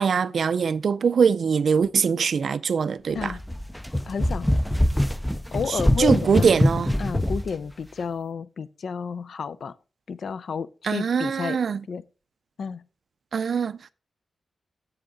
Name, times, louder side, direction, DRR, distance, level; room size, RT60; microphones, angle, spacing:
voice 1, 0.0-3.3 5.7-6.9 10.8-11.8 13.3-13.9, right 6 dB, 55° right, 0.4 m, -23 dB
sound 1, 3.2-7.5, left 1 dB, 5° left, 0.4 m, -24 dB
voice 2, 4.1-4.5 5.5-6.6 7.0-9.7 10.1-11.6 11.9-12.0 12.6-12.8, left 6 dB, 65° left, 0.5 m, -31 dB
7.8 x 7.2 x 3.8 m
wide cardioid pair, 155°, 0 cm